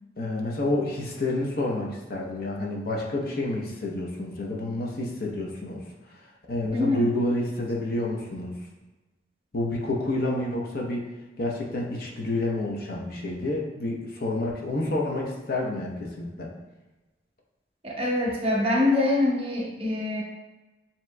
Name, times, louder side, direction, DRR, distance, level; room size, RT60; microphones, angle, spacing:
voice 1, 0.2-5.8 6.5-8.6 9.5-11.1 11.4-16.5, left 1 dB, 55° left, -1 dB, 0.8 m, -29 dB
voice 2, 6.7-7.1 17.8-20.2, left 2 dB, 30° right, -3 dB, 0.9 m, -24 dB
7.3 x 2.9 x 2.2 m, 1.1 s
head